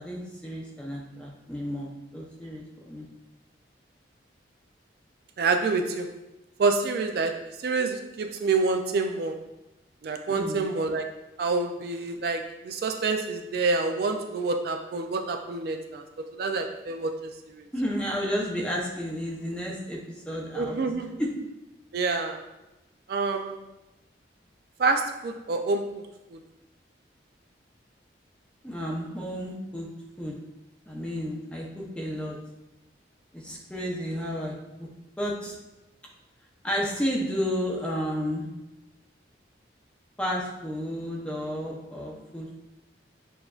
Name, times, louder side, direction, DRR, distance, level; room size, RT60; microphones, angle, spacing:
voice 1, 0.0-3.1 10.3-10.7 17.7-20.8 21.2-21.3 28.6-29.9 30.2-30.4 30.9-32.4 33.3-34.9 35.2-35.6 36.6-38.5 40.2-42.6, equal, 5° left, -3 dB, 0.6 m, -32 dB
voice 2, 5.4-6.1 6.6-9.4 10.0-11.1 11.4-16.0 16.4-17.1 17.6-17.7 20.6-21.2 21.9-22.4 23.1-23.6 24.8-25.9 26.3-26.4, right 3 dB, 55° right, 5 dB, 0.3 m, -27 dB
6.7 x 2.5 x 2.3 m, 0.97 s
head